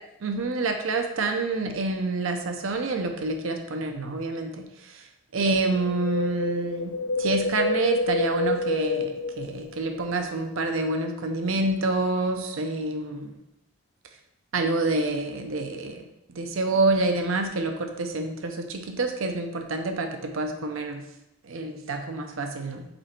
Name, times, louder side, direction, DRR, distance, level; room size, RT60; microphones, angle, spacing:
voice 1, 0.2-5.0 5.3-13.3 14.5-16.0 16.4-21.0 21.4-22.8, right 2 dB, 75° right, 5 dB, 0.6 m, -27 dB
Wind, 5.8-10.1 10.4-10.5, left 3 dB, 70° left, 0.4 m, -28 dB
5.2 x 4.3 x 4.4 m, 0.87 s
head